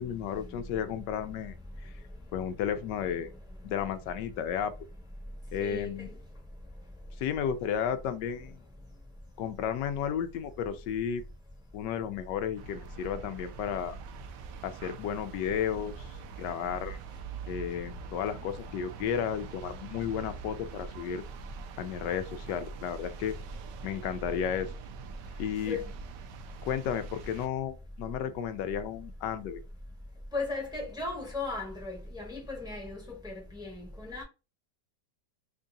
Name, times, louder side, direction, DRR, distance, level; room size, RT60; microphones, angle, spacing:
voice 1, 0.0-1.5 1.8-1.9 2.3-3.3 3.6-4.7 5.5-6.1 7.2-8.6 9.4-11.2 11.7-14.0 14.6-17.0 17.5-21.2 21.8-23.3 23.8-24.7 25.4-25.8 26.6-29.6, left 8 dB, 85° left, 1.2 m, -33 dB
voice 2, 5.6-5.9 25.7-25.8 30.3-33.0 33.2-34.2, left 3 dB, 5° right, 0.9 m, -36 dB
sound 1, 12.6-27.5, right 7 dB, 85° right, 1.2 m, -45 dB
3.6 x 2.6 x 3.6 m
omnidirectional pair, 1.8 m